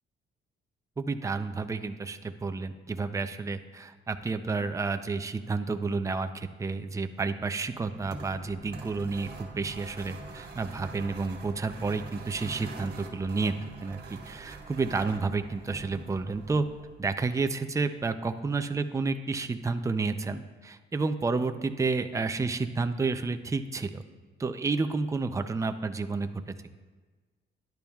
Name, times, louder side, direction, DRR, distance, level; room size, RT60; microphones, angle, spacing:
voice 1, 1.0-13.5 13.8-16.7 17.0-24.0 24.4-26.3, right 4 dB, 15° right, 8 dB, 0.5 m, -30 dB
sound 1, 7.7-17.1, right 3 dB, 50° right, 1.6 m, -44 dB
12.0 x 10.5 x 2.4 m, 1.4 s
cardioid pair, 90°, 20 cm